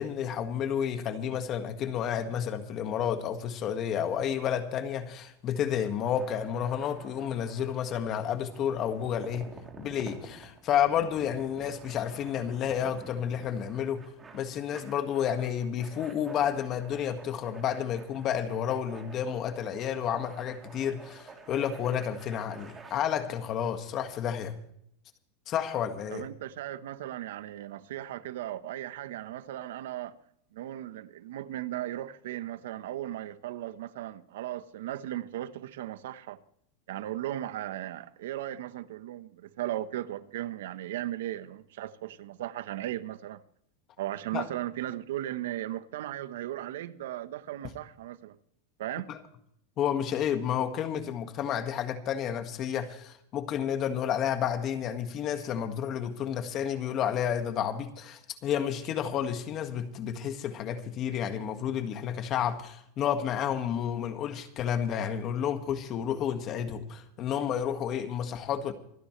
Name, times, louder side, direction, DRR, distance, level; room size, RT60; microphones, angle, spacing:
voice 1, 0.0-9.5 9.8-24.6 25.5-26.3 44.3-44.5 49.1-49.2 49.8-68.7, left 9 dB, 35° left, 1.8 m, -31 dB
sound 1, 5.9-22.9, right 4 dB, 15° right, 3.2 m, -50 dB
voice 2, 26.1-30.2 30.5-36.4 36.9-43.4 44.0-48.4 48.8-49.1, right 13 dB, 75° right, 1.1 m, -37 dB
27.5 x 10.0 x 3.2 m
supercardioid pair, 150°, 0 cm